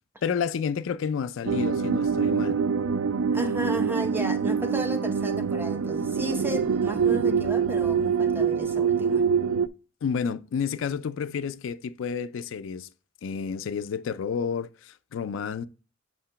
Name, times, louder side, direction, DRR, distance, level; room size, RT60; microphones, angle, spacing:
voice 1, 0.2-2.6 10.0-12.9 13.2-15.6, left 6 dB, 65° left, 0.3 m, -30 dB
sound 1, 1.5-9.7, right 6 dB, 85° right, 0.3 m, -25 dB
voice 2, 3.3-9.3, right 1 dB, 10° right, 0.6 m, -33 dB
7.4 x 2.9 x 5.6 m
head